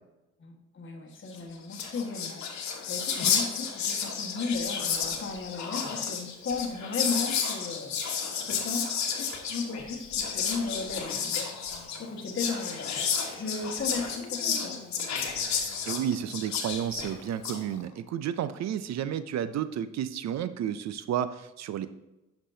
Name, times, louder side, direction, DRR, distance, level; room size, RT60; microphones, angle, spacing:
voice 1, 0.4-14.8, left 4 dB, 40° left, 2 dB, 1.5 m, -36 dB
Whispering, 1.4-1.5 1.6-17.6, left 6 dB, 65° left, 1.3 m, -31 dB
sound 1, 10.0-12.2 14.1-15.9 17.5-18.0, left 6 dB, 90° left, 0.9 m, -49 dB
voice 2, 15.9-21.9, right 9 dB, 60° right, 13 dB, 0.5 m, -31 dB
9.9 x 6.1 x 2.7 m, 1.0 s
cardioid pair, 90°, 30 cm